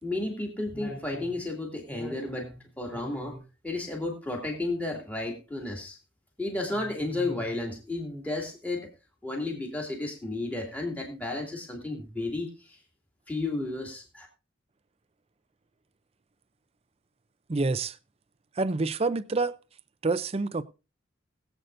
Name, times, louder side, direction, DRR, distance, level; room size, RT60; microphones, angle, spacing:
voice 1, 0.0-6.0 6.4-8.9 9.2-12.8 13.3-14.3, left 2 dB, 5° left, 2.5 m, -33 dB
voice 2, 17.5-18.0 18.6-19.6 20.0-20.6, right 3 dB, 30° right, 0.5 m, -27 dB
21.0 x 8.0 x 2.6 m
head